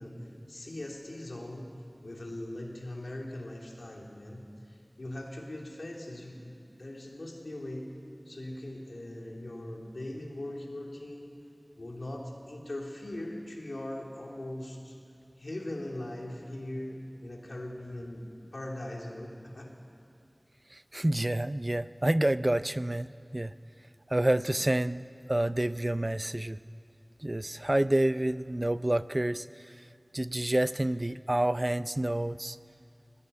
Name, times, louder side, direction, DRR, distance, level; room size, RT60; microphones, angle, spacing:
voice 1, 0.0-1.7 2.0-6.5 6.8-7.9 8.2-11.4 11.8-15.0 15.4-19.7, left 1 dB, 85° left, 0 dB, 3.2 m, -40 dB
voice 2, 20.7-23.5 24.1-25.0 25.3-26.6 27.2-29.7 30.1-32.6, right 1 dB, 35° right, 14 dB, 0.5 m, -28 dB
19.5 x 17.5 x 9.7 m, 2.4 s
wide cardioid pair, 45°, 0 cm